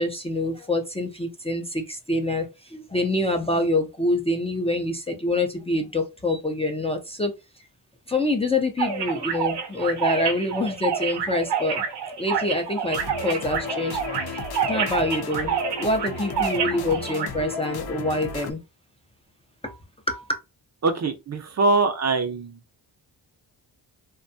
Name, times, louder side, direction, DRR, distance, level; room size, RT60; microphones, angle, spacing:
voice 1, 0.0-7.3 8.1-11.8 12.2-14.0 14.7-15.5 15.8-18.6 19.6-19.8 20.1-20.4, left 2 dB, 15° left, 0.4 m, -26 dB
sound 1, 8.8-17.3, right 7 dB, 65° right, 0.8 m, -28 dB
sound 2, 12.9-18.5, left 5 dB, 60° left, 0.6 m, -34 dB
voice 2, 20.8-22.6, right 3 dB, 40° right, 0.5 m, -23 dB
2.6 x 2.2 x 2.6 m
cardioid pair, 70°, 44 cm